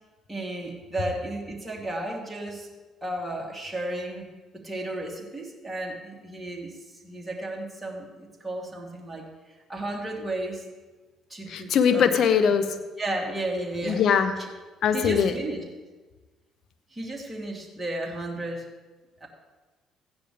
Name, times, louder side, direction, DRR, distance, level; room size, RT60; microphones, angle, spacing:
voice 1, 0.3-2.7 3.0-4.3 4.5-9.3 9.7-10.6 11.3-12.1 12.5-12.6 13.0-14.0 14.9-15.6 16.9-18.6 19.2-19.3, right 1 dB, 10° right, -2 dB, 3.0 m, -33 dB
voice 2, 11.5-12.7 13.8-14.3 14.8-15.4, left 7 dB, 60° left, 9 dB, 1.1 m, -21 dB
15.5 x 10.0 x 3.5 m, 1.3 s
supercardioid pair, 65°, 0 cm